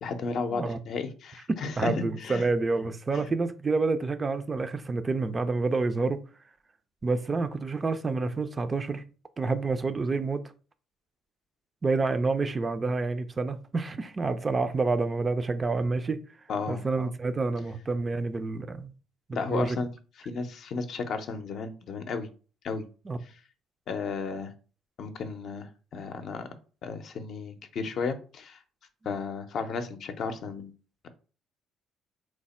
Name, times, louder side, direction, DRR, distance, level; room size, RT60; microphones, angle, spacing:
voice 1, 0.0-2.5 3.1-3.3 16.5-16.8 19.3-19.9 20.3-22.3 22.6-22.8 23.9-24.5 25.0-26.5 26.8-28.6 29.1-30.7, left 4 dB, 60° left, 0.5 m, -33 dB
voice 2, 1.8-6.2 7.0-9.0 9.4-10.4 11.8-16.2 16.7-18.9 19.3-19.8 23.1-23.2, right 3 dB, 30° right, 0.4 m, -28 dB
3.1 x 2.1 x 4.1 m
supercardioid pair, 85°, 0 cm